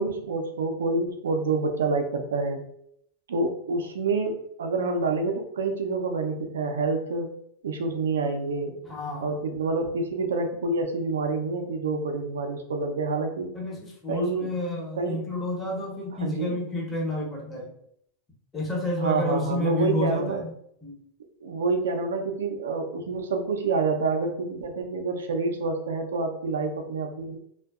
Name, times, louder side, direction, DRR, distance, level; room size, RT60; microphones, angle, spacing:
voice 1, 0.0-2.6 3.3-7.3 7.6-8.7 9.2-13.5 14.1-14.5 15.0-15.2 16.2-16.6 19.0-20.4 21.4-27.4, right 3 dB, 85° right, 4 dB, 0.4 m, -27 dB
voice 2, 8.8-9.4 13.5-17.7 18.5-20.5 20.8-21.0, left 1 dB, 20° left, -3 dB, 0.9 m, -30 dB
2.5 x 2.1 x 2.3 m, 0.71 s
hypercardioid pair, 110°, 0 cm